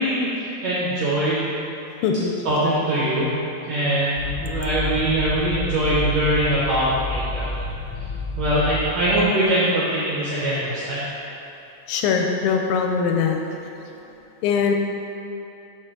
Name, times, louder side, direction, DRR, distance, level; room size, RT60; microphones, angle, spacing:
voice 1, 0.0-1.5 2.4-3.3 3.7-7.6 8.4-11.0, right 1 dB, 75° right, -8 dB, 1.7 m, -22 dB
voice 2, 2.0-2.3 11.9-13.4 14.4-14.8, left 6 dB, 90° left, 2 dB, 2.4 m, -21 dB
sound 1, 4.2-9.2, left 2 dB, 75° left, 1.8 m, -30 dB
6.5 x 4.3 x 3.7 m, 2.8 s
omnidirectional pair, 4.0 m